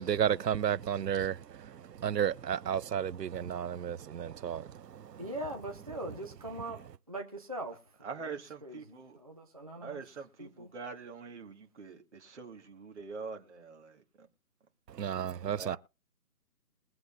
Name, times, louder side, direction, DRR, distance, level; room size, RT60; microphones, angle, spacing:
voice 1, 0.0-4.9 14.9-15.8, right 9 dB, 85° right, 0.7 m, -32 dB
voice 2, 5.2-6.8 7.1-10.0 10.4-10.7, right 1 dB, 25° right, 0.6 m, -42 dB
voice 3, 8.0-9.1 9.8-13.9 15.5-15.8, right 5 dB, 45° right, 1.7 m, -44 dB
22.0 x 7.8 x 2.5 m
figure-of-eight pair, 165°, 47 cm